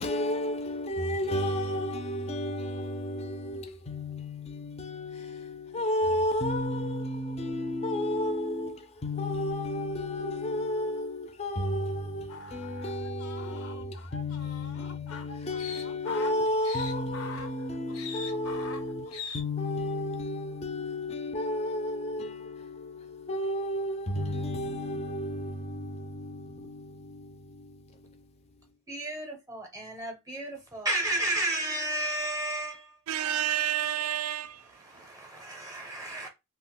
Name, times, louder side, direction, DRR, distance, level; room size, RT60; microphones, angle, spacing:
voice 1, 0.0-28.3, left 1 dB, 30° left, 0.4 m, -32 dB
sound 1, 12.3-19.4, left 5 dB, 80° left, 0.5 m, -42 dB
voice 2, 28.9-33.4 34.0-34.1 34.6-36.3, right 1 dB, 15° right, 0.6 m, -33 dB
voice 3, 33.1-34.6 36.1-36.3, right 10 dB, 75° right, 0.3 m, -30 dB
2.4 x 2.1 x 3.7 m
head